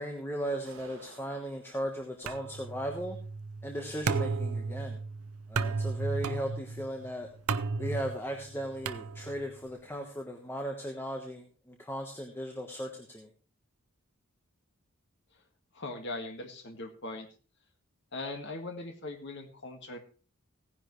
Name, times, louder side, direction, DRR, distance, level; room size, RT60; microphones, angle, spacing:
voice 1, 0.0-3.2 3.6-5.0 5.5-7.3 7.8-13.3, equal, 10° left, 2 dB, 1.2 m, -37 dB
sound 1, 0.7-1.7, right 3 dB, 70° right, 2.3 m, -52 dB
sound 2, 2.3-9.6, right 4 dB, 90° right, 0.7 m, -34 dB
voice 2, 15.7-17.3 18.1-20.0, left 2 dB, 55° left, 4 dB, 1.9 m, -40 dB
16.5 x 10.5 x 3.2 m, 0.36 s
head